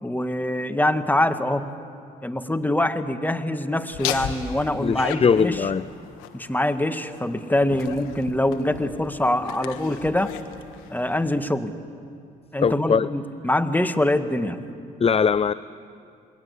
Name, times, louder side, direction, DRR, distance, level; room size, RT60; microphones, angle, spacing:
voice 1, 0.0-1.7 2.2-5.7 6.3-10.3 10.9-11.7 12.5-14.6, left 1 dB, 10° left, 9 dB, 1.8 m, -24 dB
Laughter, 3.9-11.6, left 9 dB, 85° left, 1.4 m, -36 dB
voice 2, 4.8-5.9 12.6-13.1 15.0-15.5, left 6 dB, 30° left, 16 dB, 0.6 m, -20 dB
27.0 x 21.5 x 8.4 m, 2.4 s
hypercardioid pair, 50°, 20 cm